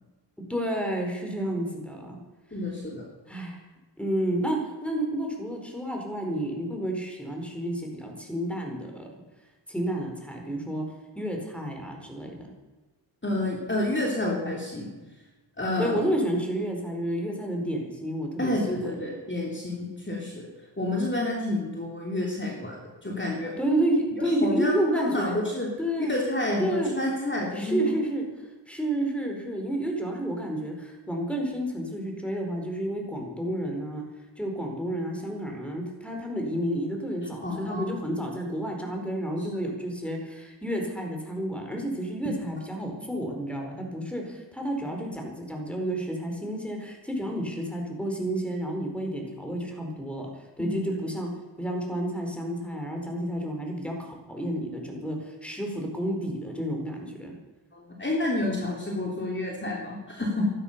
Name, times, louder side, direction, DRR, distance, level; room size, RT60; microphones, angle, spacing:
voice 1, 0.5-2.2 3.3-3.6 4.0-9.1 9.7-10.8 11.2-12.4 15.8-18.5 23.6-25.4 25.8-26.1 26.6-27.0 27.5-28.2 28.7-34.0 34.4-50.3 50.6-51.3 51.6-57.3, right 1 dB, 5° left, 1 dB, 4.7 m, -30 dB
voice 2, 2.5-3.0 13.2-14.9 15.6-16.0 18.4-20.5 20.8-22.8 23.0-23.5 24.2-25.7 26.1-27.9 37.4-37.9 39.4-39.5 50.6-50.8 57.7-60.5, left 1 dB, 25° left, -2 dB, 3.4 m, -29 dB
14.5 x 12.5 x 6.9 m, 1.2 s
wide cardioid pair, 65°, 43 cm